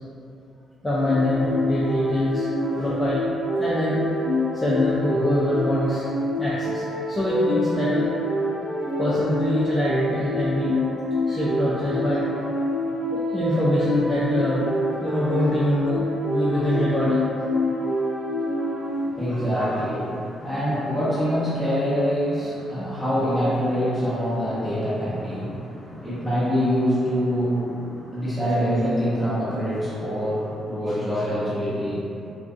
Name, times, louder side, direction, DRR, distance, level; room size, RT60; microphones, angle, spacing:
voice 1, 0.8-2.5 2.8-3.2 3.6-4.0 4.5-6.1 6.4-8.0 9.0-10.7 11.2-12.3 13.1-14.7 15.0-16.0 16.3-17.2 19.3-19.4 30.9-31.0, left 1 dB, 10° left, -9 dB, 0.4 m, -24 dB
sound 1, 1.0-19.1, left 1 dB, 80° left, 0.4 m, -26 dB
voice 2, 18.8-32.3, equal, 5° right, -11 dB, 1.0 m, -25 dB
2.4 x 2.4 x 2.4 m, 2.7 s
cardioid pair, 90°, 0 cm